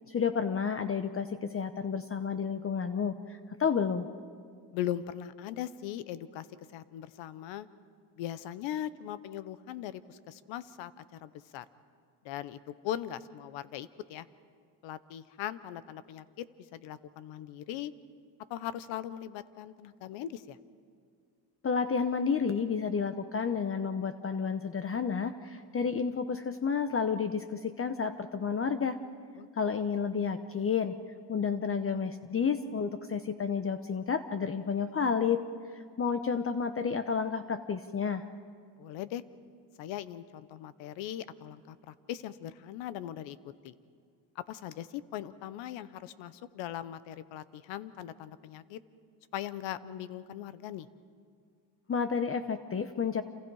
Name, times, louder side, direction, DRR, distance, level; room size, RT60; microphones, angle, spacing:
voice 1, 0.1-4.1 21.6-29.0 29.6-30.9 31.3-35.4 35.7-38.2 51.9-53.2, left 6 dB, 30° left, 10 dB, 0.9 m, -31 dB
voice 2, 4.7-6.5 6.7-7.7 8.2-11.6 12.2-14.3 14.8-16.5 16.7-17.9 18.5-20.6 29.4-29.5 38.8-39.2 39.8-43.4 43.6-43.7 44.3-48.8 49.3-50.9, left 11 dB, 85° left, 15 dB, 1.0 m, -39 dB
28.0 x 27.5 x 4.8 m, 2.1 s
cardioid pair, 90°, 44 cm